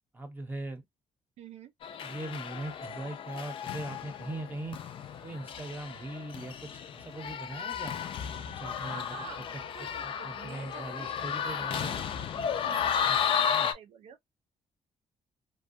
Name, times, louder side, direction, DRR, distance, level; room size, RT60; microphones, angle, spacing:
voice 1, 0.1-0.8 2.0-4.8 5.2-8.0 8.5-9.3 9.8-12.0 13.0-13.7, right 2 dB, 15° right, 0.8 m, -40 dB
voice 2, 1.4-1.7 8.8-11.1 11.4-11.9 12.6-14.3, right 8 dB, 70° right, 0.4 m, -48 dB
sound 1, 1.8-13.7, left 7 dB, 50° left, 0.4 m, -33 dB
2.6 x 2.2 x 2.5 m
cardioid pair, 155°, 12 cm